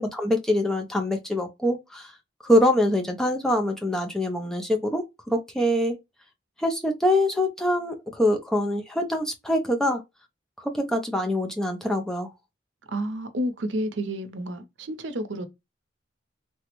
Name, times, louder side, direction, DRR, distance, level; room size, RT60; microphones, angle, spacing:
voice 1, 0.0-2.1 2.4-6.0 6.6-10.0 10.6-12.3, left 1 dB, 5° left, 0.3 m, -24 dB
voice 2, 12.9-15.5, right 1 dB, 75° right, 0.6 m, -30 dB
3.3 x 2.0 x 2.9 m
head